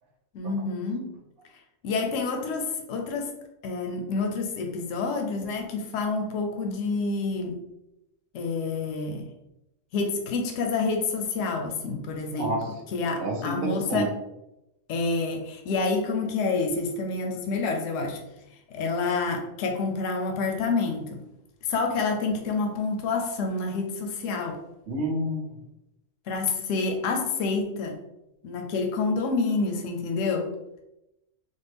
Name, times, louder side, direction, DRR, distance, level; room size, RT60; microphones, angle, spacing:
voice 1, 0.3-1.1 1.8-3.3 3.6-7.5 8.3-9.3 9.9-12.6 12.9-14.1 14.9-18.2 18.7-21.2 21.6-24.6 26.3-28.0 28.4-30.5, left 4 dB, 75° left, 3 dB, 0.9 m, -28 dB
voice 2, 12.4-12.7 13.2-14.0 24.9-25.6, right 1 dB, 50° right, 1 dB, 0.9 m, -29 dB
3.6 x 2.1 x 3.4 m, 0.89 s
omnidirectional pair, 1.4 m